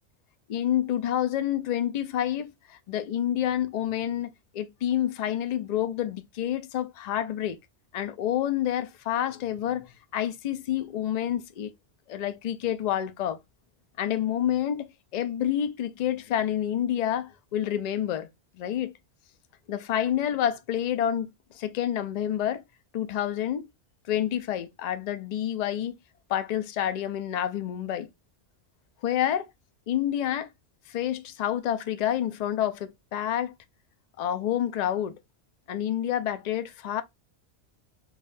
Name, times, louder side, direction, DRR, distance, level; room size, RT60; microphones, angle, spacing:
voice 1, 0.5-7.6 7.9-11.7 12.1-13.4 14.0-18.3 18.6-18.9 19.7-22.6 22.9-23.7 24.1-25.9 26.3-28.1 29.0-29.5 29.9-30.5 30.9-33.5 34.2-35.1 35.7-37.0, left 11 dB, 60° left, 0.4 m, -28 dB
5.3 x 2.4 x 2.5 m
omnidirectional pair, 1.2 m